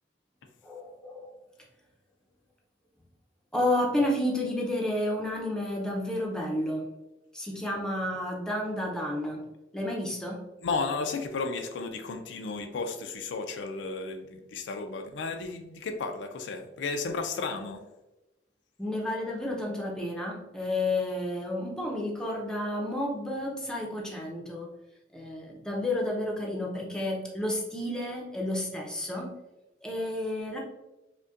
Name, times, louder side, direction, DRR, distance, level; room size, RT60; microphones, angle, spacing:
voice 1, 0.6-1.3 3.5-6.9 7.3-9.4 9.7-10.4 18.8-24.7 25.1-29.3 29.8-30.6, left 1 dB, 5° left, -2 dB, 0.6 m, -31 dB
voice 2, 10.6-17.8, left 4 dB, 65° left, 5 dB, 0.4 m, -33 dB
5.1 x 2.2 x 2.4 m, 1.0 s
head